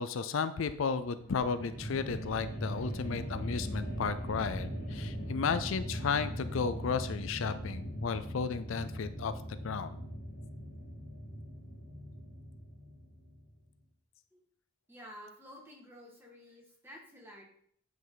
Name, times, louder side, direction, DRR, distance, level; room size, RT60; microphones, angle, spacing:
voice 1, 0.0-9.3 9.6-10.0, left 5 dB, 65° left, 12 dB, 0.4 m, -34 dB
sound 1, 1.1-13.4, equal, 45° left, 1.9 m, -40 dB
voice 2, 14.9-17.4, equal, 10° right, -2 dB, 1.8 m, -51 dB
9.2 x 5.4 x 3.9 m, 0.64 s
head